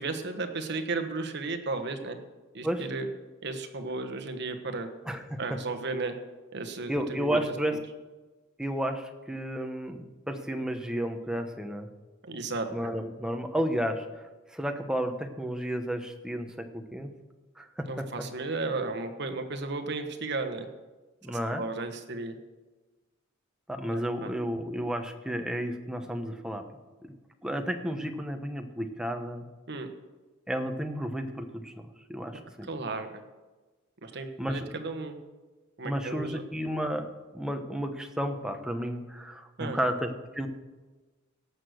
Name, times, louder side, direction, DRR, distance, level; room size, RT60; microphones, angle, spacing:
voice 1, 0.0-2.2 2.5-3.1 3.4-4.9 5.4-6.1 6.5-7.4 12.2-12.9 17.9-20.7 21.3-22.3 23.9-24.3 29.7-29.9 32.6-33.2 34.0-35.2 35.8-36.4 39.6-39.8, right 3 dB, 55° right, 6 dB, 1.3 m, -34 dB
voice 2, 5.1-5.4 6.9-7.8 8.6-11.9 12.7-17.1 17.6-18.1 21.2-21.6 23.7-26.6 27.0-27.1 27.4-29.5 30.5-32.7 34.4-34.7 35.8-40.5, equal, 5° right, 5 dB, 0.9 m, -32 dB
17.5 x 6.6 x 6.4 m, 1.2 s
head